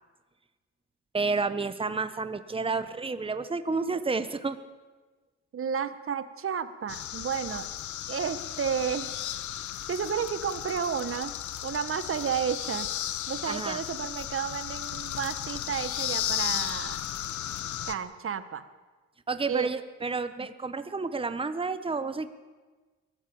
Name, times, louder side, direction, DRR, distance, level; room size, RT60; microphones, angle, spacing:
voice 1, 1.1-4.6 13.5-13.8 19.3-22.3, right 4 dB, 20° right, 11 dB, 1.3 m, -30 dB
voice 2, 5.5-7.7 8.1-9.1 9.8-11.3 11.6-12.9 13.3-17.0 17.9-18.7 19.5-19.7, right 7 dB, 45° right, 12 dB, 1.5 m, -32 dB
sound 1, 6.9-18.0, left 11 dB, 75° left, 1.2 m, -34 dB
23.0 x 15.0 x 8.9 m, 1.3 s
cardioid pair, 90°, 30 cm